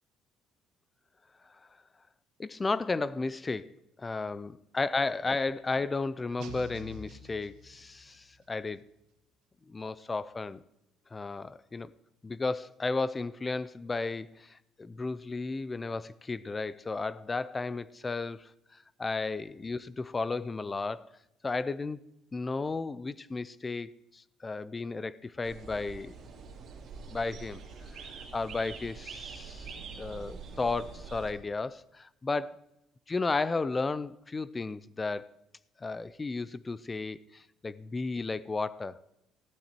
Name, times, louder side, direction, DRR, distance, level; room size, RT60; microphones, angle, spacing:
voice 1, 2.4-8.8 9.7-10.6 11.1-11.9 12.2-21.1 21.4-26.2 27.1-27.6 27.9-32.5 33.1-35.3 35.8-39.0, left 3 dB, 15° left, 0.3 m, -34 dB
sound 1, 6.4-8.3, equal, 85° right, 1.6 m, -47 dB
sound 2, 25.4-31.3, right 5 dB, 40° right, 2.6 m, -45 dB
14.0 x 11.5 x 4.4 m
cardioid pair, 170°, 0 cm